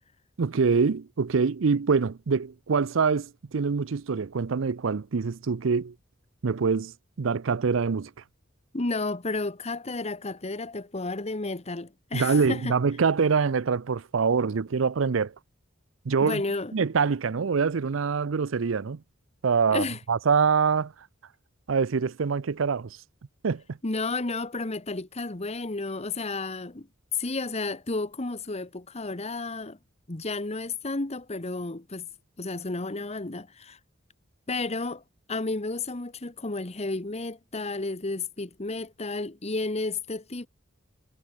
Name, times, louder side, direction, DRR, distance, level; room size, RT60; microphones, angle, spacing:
voice 1, 0.4-5.9 6.4-6.9 7.2-8.1 12.1-15.3 16.1-16.4 16.7-19.0 19.4-20.9 21.7-23.0 23.4-23.8, right 5 dB, 70° right, 0.5 m, -25 dB
voice 2, 8.7-12.7 16.2-16.7 19.7-20.0 23.8-26.9 27.1-29.8 30.1-32.1 32.4-33.8 34.5-35.0 35.3-40.5, left 3 dB, 35° left, 1.3 m, -32 dB
head